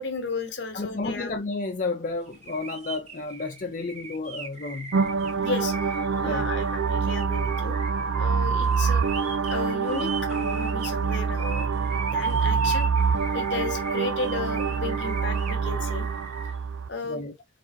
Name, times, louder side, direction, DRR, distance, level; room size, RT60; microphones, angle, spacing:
voice 1, 0.0-1.3 5.4-5.9 6.2-7.7 8.1-9.0 9.5-11.7 11.9-12.9 13.3-16.1 16.9-17.3, left 4 dB, 60° left, 1.3 m, -34 dB
voice 2, 0.7-5.0 6.2-6.5 17.0-17.3, left 3 dB, 40° left, 0.5 m, -32 dB
sound 1, 2.3-16.5, right 3 dB, 35° right, 1.4 m, -41 dB
sound 2, 4.9-16.9, right 5 dB, 80° right, 0.5 m, -26 dB
4.3 x 3.9 x 2.6 m
head